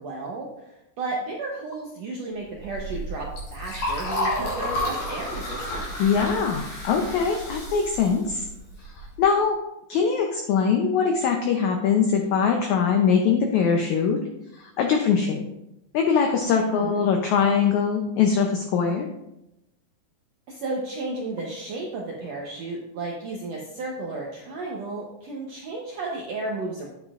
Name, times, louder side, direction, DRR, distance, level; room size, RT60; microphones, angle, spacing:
voice 1, 0.0-5.9 16.7-17.0 20.5-26.9, right 3 dB, 75° right, -2 dB, 1.5 m, -33 dB
Liquid, 2.5-9.2, left 1 dB, 55° left, 4.8 m, -31 dB
voice 2, 6.0-8.5 8.8-9.6 9.9-14.2 14.5-15.4 15.9-19.1, left 6 dB, 90° left, 3 dB, 1.6 m, -22 dB
9.2 x 9.0 x 2.5 m, 0.88 s
omnidirectional pair, 4.3 m